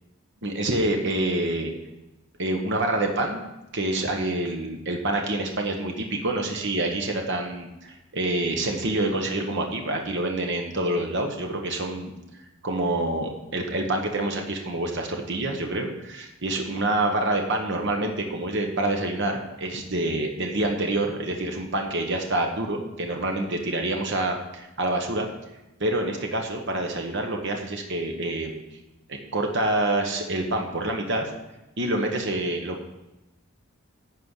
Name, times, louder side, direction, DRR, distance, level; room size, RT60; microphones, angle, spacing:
voice 1, 0.4-1.7 2.4-3.4 3.7-12.1 12.6-25.3 25.8-28.6 29.1-31.3 31.8-32.8, right 1 dB, 55° right, 2 dB, 1.1 m, -27 dB
10.5 x 4.4 x 8.0 m, 0.99 s
head